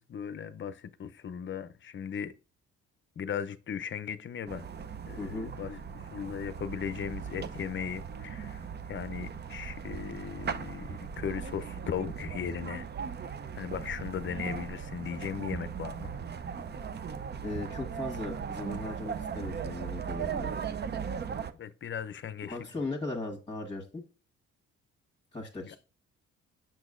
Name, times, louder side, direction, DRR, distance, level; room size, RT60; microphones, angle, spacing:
voice 1, 0.0-2.3 3.2-4.6 5.1-12.9 13.2-16.2 21.6-22.9 25.6-25.8, left 8 dB, 40° left, 0.6 m, -37 dB
sound 1, 4.5-21.5, right 7 dB, 35° right, 0.6 m, -38 dB
voice 2, 5.2-5.5 17.4-20.5 22.4-24.0 25.3-25.8, left 2 dB, 15° left, 1.5 m, -37 dB
6.3 x 6.1 x 2.5 m
cardioid pair, 90°, 30 cm